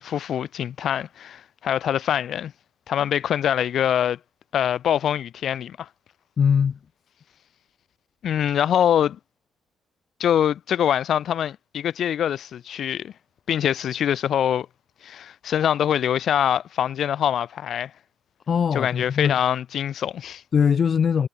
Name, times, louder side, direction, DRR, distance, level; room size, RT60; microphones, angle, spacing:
voice 1, 0.0-2.5 2.9-4.2 4.5-5.9 8.2-9.2 10.2-13.1 13.5-14.7 15.0-17.9 18.7-20.4, left 9 dB, 65° left, 3.0 m, -24 dB
voice 2, 6.4-6.8 18.5-19.3 20.5-21.3, left 7 dB, 50° left, 2.1 m, -21 dB
cardioid pair, 90°, 0 cm